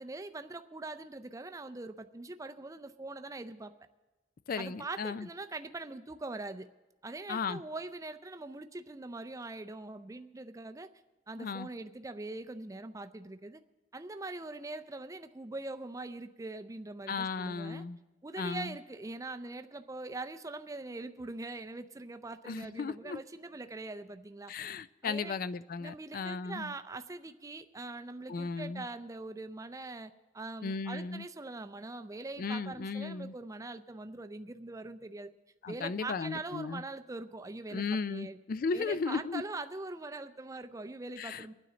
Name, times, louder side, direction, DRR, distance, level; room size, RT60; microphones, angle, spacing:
voice 1, 0.0-3.7 4.6-6.7 7.0-10.9 11.3-13.6 13.9-17.8 18.2-24.5 25.0-25.4 25.8-35.3 35.7-38.4 38.7-41.5, right 2 dB, 15° right, 9 dB, 0.4 m, -42 dB
voice 2, 4.5-5.3 7.3-7.6 11.4-11.7 17.1-18.0 18.4-18.7 22.5-23.2 24.5-26.7 28.3-28.8 30.6-31.3 32.4-33.3 35.6-36.8 37.7-39.4 41.2-41.5, left 4 dB, 45° left, 16 dB, 0.4 m, -35 dB
24.0 x 9.4 x 4.0 m, 1.1 s
head